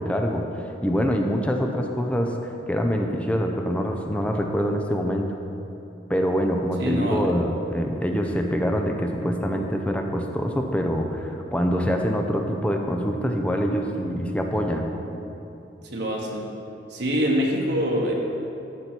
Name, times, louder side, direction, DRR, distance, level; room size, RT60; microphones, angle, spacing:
voice 1, 0.0-5.3 6.1-14.9, equal, 5° left, 2 dB, 0.6 m, -25 dB
voice 2, 6.8-7.3 15.8-16.5 16.9-18.1, equal, 60° right, -1 dB, 1.2 m, -25 dB
12.5 x 7.0 x 4.5 m, 2.9 s
head